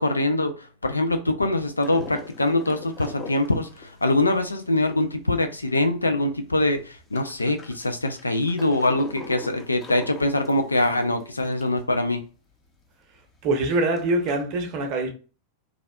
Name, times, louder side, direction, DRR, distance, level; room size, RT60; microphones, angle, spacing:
voice 1, 0.0-12.2, left 2 dB, 80° left, 0.4 m, -23 dB
sound 1, 1.8-5.8 6.2-6.3 6.5-11.8 12.2-12.3 12.5-12.6 13.1-14.4, left 3 dB, 20° left, 0.6 m, -42 dB
voice 2, 13.4-15.1, right 2 dB, 40° right, 0.7 m, -24 dB
3.4 x 2.4 x 2.2 m
figure-of-eight pair, 90°, 0 cm